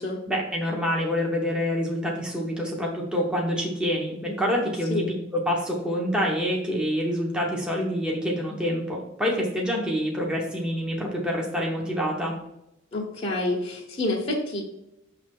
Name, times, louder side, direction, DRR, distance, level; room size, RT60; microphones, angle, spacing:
voice 1, 0.3-5.0 5.3-12.3, equal, 5° right, -2 dB, 1.0 m, -27 dB
voice 2, 12.9-14.6, left 2 dB, 30° left, -4 dB, 1.1 m, -28 dB
6.4 x 3.3 x 5.3 m, 0.86 s
head